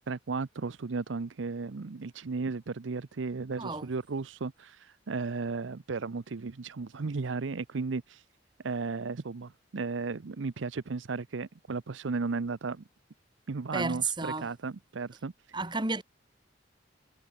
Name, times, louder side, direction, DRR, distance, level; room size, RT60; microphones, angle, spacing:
voice 1, 0.1-8.2 8.6-12.8 13.5-15.3, right 4 dB, 90° right, 0.7 m, -35 dB
voice 2, 3.6-3.9 13.7-14.5 15.5-16.0, right 3 dB, 25° right, 3.1 m, -32 dB
head